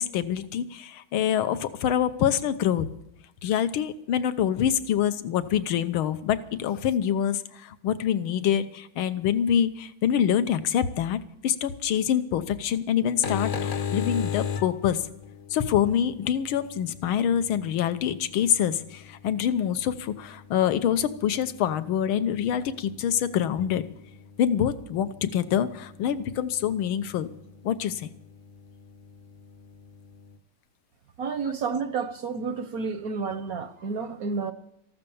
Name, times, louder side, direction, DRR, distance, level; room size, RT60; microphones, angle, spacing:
voice 1, 0.0-2.9 3.4-15.1 15.5-23.8 24.4-27.3 27.6-28.1 31.4-31.5, left 9 dB, 75° left, 1.7 m, -26 dB
sound 1, 13.0-30.4, left 7 dB, 45° left, 1.0 m, -39 dB
voice 2, 31.2-34.5, right 5 dB, 60° right, 0.9 m, -30 dB
14.5 x 12.5 x 7.0 m
omnidirectional pair, 2.3 m